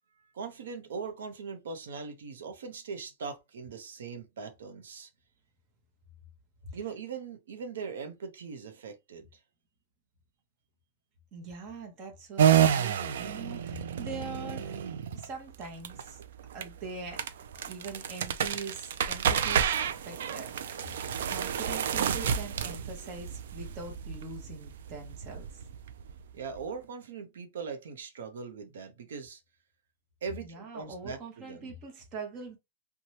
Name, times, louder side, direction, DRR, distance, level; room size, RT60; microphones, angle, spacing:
voice 1, 0.2-5.1 6.7-9.4 26.3-29.4 30.2-31.7, right 5 dB, 80° right, 0.7 m, -40 dB
voice 2, 11.3-14.8 15.1-16.2 16.5-17.2 17.6-21.0 21.2-25.6 30.4-32.6, right 4 dB, 25° right, 0.9 m, -43 dB
sound 1, 12.4-26.6, right 9 dB, 65° right, 0.4 m, -30 dB
2.8 x 2.2 x 3.0 m
supercardioid pair, 170°, 0 cm